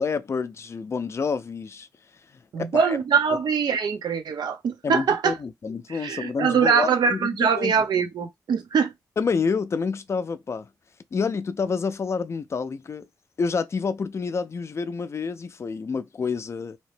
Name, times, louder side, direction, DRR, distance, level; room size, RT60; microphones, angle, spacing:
voice 1, 0.0-1.9 2.6-3.0 4.8-7.8 9.2-10.7 11.1-13.1 13.4-16.8, left 5 dB, 40° left, 0.4 m, -28 dB
voice 2, 2.5-5.4 5.9-8.9, right 6 dB, 80° right, 0.6 m, -23 dB
2.8 x 2.1 x 3.1 m
wide cardioid pair, 110°, 7 cm